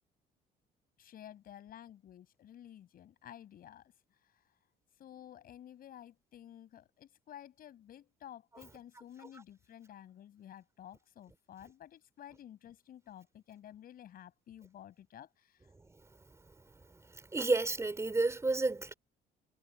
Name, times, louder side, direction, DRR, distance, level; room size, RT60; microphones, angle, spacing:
voice 1, 1.0-3.9 4.2-4.4 5.0-15.7, left 11 dB, 60° left, 6.7 m, -53 dB
voice 2, 17.3-18.9, right 3 dB, 15° right, 4.6 m, -30 dB
cardioid pair, 110°, 17 cm